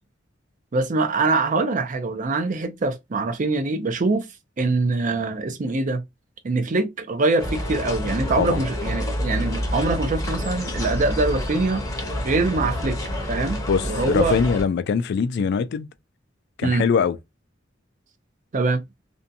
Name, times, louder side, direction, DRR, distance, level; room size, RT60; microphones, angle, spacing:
voice 1, 0.7-4.3 4.6-6.0 6.4-11.8 12.2-13.0 13.3-14.4 16.6-16.9 18.5-18.8, right 3 dB, 40° right, 0.5 m, -23 dB
sound 1, 7.4-14.6, equal, 15° left, 0.7 m, -28 dB
voice 2, 13.7-15.9 16.6-17.2, left 6 dB, 60° left, 0.3 m, -22 dB
2.6 x 2.2 x 2.6 m
head